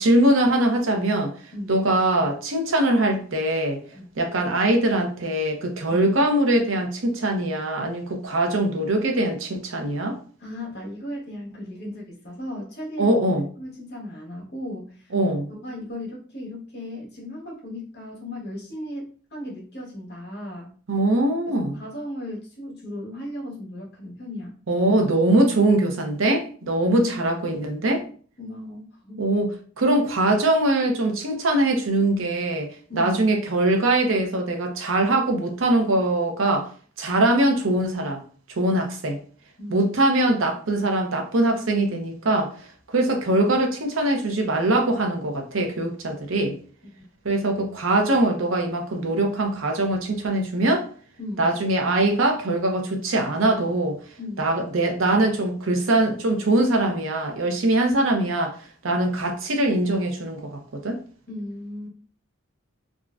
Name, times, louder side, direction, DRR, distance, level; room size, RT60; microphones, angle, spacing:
voice 1, 0.0-1.3 1.7-3.8 4.2-10.2 13.0-13.5 15.1-15.5 20.9-21.8 24.7-28.0 29.2-29.5 29.8-32.7 32.9-36.7 37.0-38.2 38.6-39.2 39.7-42.5 42.9-46.6 47.2-50.9 51.4-54.0 54.4-58.6 58.8-61.0, right 1 dB, 75° right, 0.7 m, -22 dB
voice 2, 10.4-13.2 13.6-15.1 15.5-20.8 21.5-24.6 26.8-27.1 27.9-28.0 28.4-29.2 32.9-33.2 39.6-39.9 51.2-51.5 54.2-54.5 61.3-61.9, left 1 dB, 55° left, 1.3 m, -36 dB
3.6 x 2.1 x 2.4 m
head